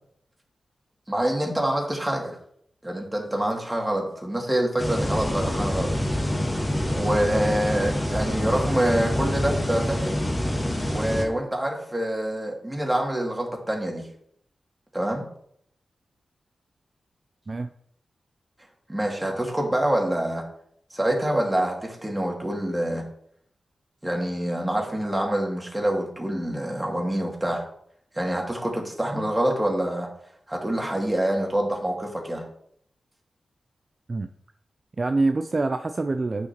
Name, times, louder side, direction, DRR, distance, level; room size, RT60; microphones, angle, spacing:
voice 1, 1.1-2.4 2.8-5.9 6.9-10.1 10.9-14.1 14.9-15.2 18.9-20.4 20.9-23.0 24.0-27.6 28.2-30.1 30.5-32.4, right 1 dB, 15° right, 0 dB, 2.4 m, -26 dB
sound 1, 4.8-11.3, left 1 dB, 20° left, 2.0 m, -26 dB
voice 2, 35.0-36.5, right 3 dB, 45° right, 8 dB, 0.4 m, -25 dB
9.0 x 6.5 x 3.0 m, 0.68 s
cardioid pair, 45°, 0 cm